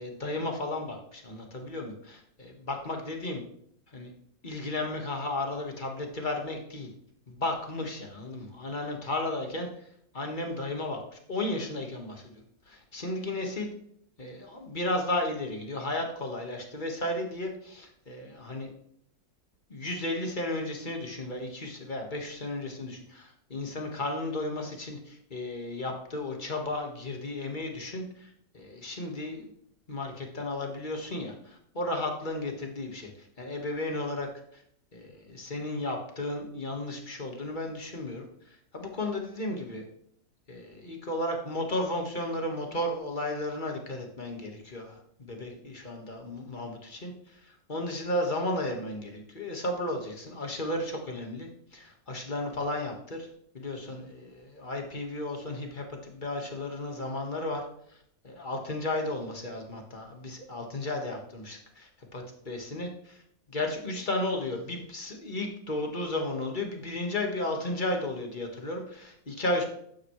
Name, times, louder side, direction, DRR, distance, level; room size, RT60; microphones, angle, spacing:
voice 1, 0.0-3.4 3.9-4.1 4.4-6.9 7.3-9.9 10.1-12.2 12.7-13.7 14.2-18.7 19.7-29.5 29.9-33.1 33.4-34.6 34.9-39.8 40.5-53.3 53.5-57.6 58.2-63.2 63.5-69.6, left 1 dB, 30° left, 2 dB, 1.8 m, -34 dB
12.0 x 9.3 x 3.3 m, 0.68 s
omnidirectional pair, 1.7 m